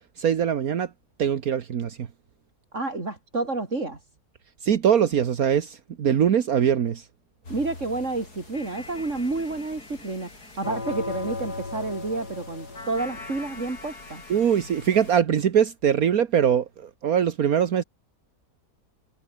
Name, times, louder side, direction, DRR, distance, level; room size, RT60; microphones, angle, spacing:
voice 1, 0.2-0.9 1.2-2.1 4.6-7.1 14.3-17.8, right 8 dB, 70° right, 1.6 m, -22 dB
voice 2, 2.7-4.0 7.5-14.2, right 3 dB, 50° right, 4.3 m, -30 dB
sound 1, 7.4-15.2, left 3 dB, 90° left, 5.4 m, -38 dB
omnidirectional pair, 1.6 m